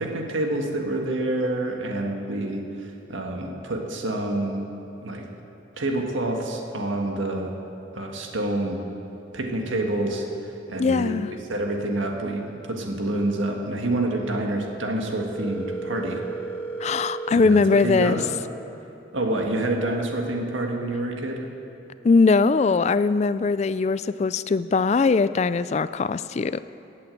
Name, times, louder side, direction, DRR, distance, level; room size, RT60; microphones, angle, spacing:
voice 1, 0.0-4.6 5.0-5.3 5.8-7.5 7.9-8.8 9.3-16.2 17.3-18.3 19.1-21.5, right 1 dB, 80° right, 2 dB, 1.7 m, -27 dB
voice 2, 10.8-11.3 16.8-18.2 22.0-26.6, left 4 dB, 35° left, 15 dB, 0.3 m, -21 dB
Telephone, 15.3-17.3, right 3 dB, 5° left, 1.3 m, -33 dB
16.5 x 8.4 x 7.8 m, 2.9 s
head